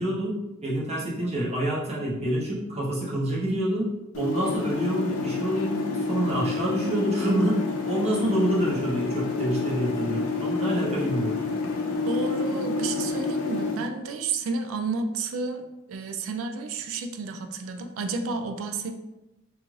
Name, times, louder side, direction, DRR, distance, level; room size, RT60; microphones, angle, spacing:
voice 1, 0.0-3.9 4.1-11.4, right 1 dB, 30° right, -6 dB, 0.8 m, -27 dB
sound 1, 4.1-13.8, left 3 dB, 90° left, 0.4 m, -29 dB
voice 2, 12.1-19.0, right 4 dB, 75° right, 6 dB, 0.3 m, -31 dB
2.5 x 2.3 x 3.1 m, 1.0 s
head